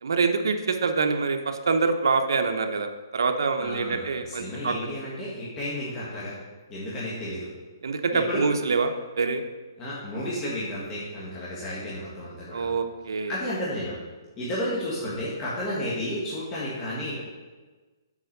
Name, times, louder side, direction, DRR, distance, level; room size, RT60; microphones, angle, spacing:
voice 1, 0.0-4.7 7.8-9.4 12.5-13.3, right 4 dB, 80° right, 6 dB, 0.9 m, -25 dB
voice 2, 3.6-6.3 6.7-7.5 8.1-8.4 9.8-12.7 13.3-14.0 14.4-17.2, left 1 dB, 20° left, -9 dB, 1.7 m, -32 dB
7.3 x 4.5 x 6.7 m, 1.3 s
hypercardioid pair, 165°, 2 cm